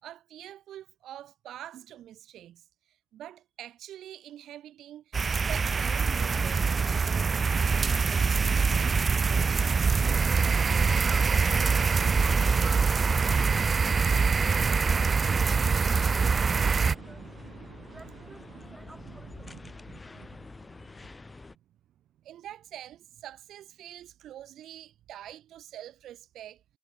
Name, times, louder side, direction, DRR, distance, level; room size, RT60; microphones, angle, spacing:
voice 1, 0.0-8.9 14.4-21.4 22.2-26.6, right 12 dB, 65° right, 3.9 m, -47 dB
sound 1, 5.1-17.0, right 5 dB, 30° right, 0.7 m, -24 dB
voice 2, 10.4-11.8 17.9-19.5, right 2 dB, 10° right, 7.8 m, -51 dB
sound 2, 11.9-21.6, left 3 dB, 20° left, 1.2 m, -47 dB
cardioid pair, 120°, 0 cm